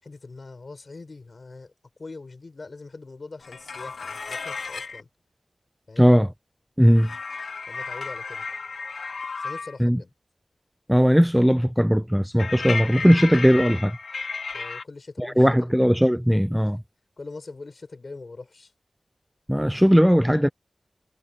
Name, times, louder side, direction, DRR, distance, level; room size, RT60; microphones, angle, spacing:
voice 1, 0.0-1.7 2.0-5.1 5.9-6.1 7.7-8.5 9.4-10.1 14.5-15.7 16.6-16.7 17.2-18.7, left 3 dB, 50° left, 6.5 m, -42 dB
sound 1, 3.4-5.0 7.0-9.8 12.4-14.8, left 4 dB, 85° left, 1.2 m, -33 dB
voice 2, 6.0-6.3 6.8-7.1 9.8-10.0 10.9-14.0 15.2-16.8 19.5-20.5, equal, ahead, 0.4 m, -18 dB
wide cardioid pair, 100°, 0 cm